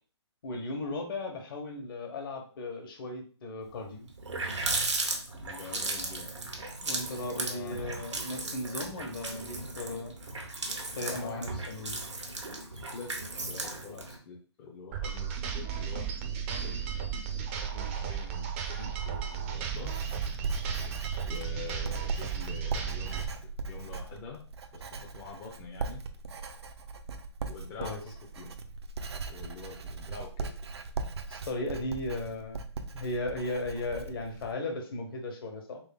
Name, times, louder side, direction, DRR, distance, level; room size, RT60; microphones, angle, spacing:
voice 1, 0.4-4.1 6.8-10.1 10.9-12.0 27.8-28.0 31.3-32.6 32.9-35.8, left 2 dB, 50° left, 3 dB, 1.3 m, -36 dB
Water tap faucet, 3.7-3.8 4.1-14.2, right 2 dB, 90° right, 1.2 m, -36 dB
voice 2, 5.4-6.3 7.4-7.8 11.0-11.6 12.7-13.2 13.4-16.1 16.5-16.8 17.6-19.9 21.2-23.3 23.7-24.4 24.7-26.0 27.5-28.5 29.3-30.5, left 5 dB, 25° left, -2 dB, 0.7 m, -46 dB
sound 1, 14.9-23.3, right 7 dB, 30° right, 0.6 m, -34 dB
Writing, 19.1-34.5, right 4 dB, 65° right, 0.7 m, -39 dB
3.7 x 3.3 x 3.7 m, 0.40 s
hypercardioid pair, 150°, 15 cm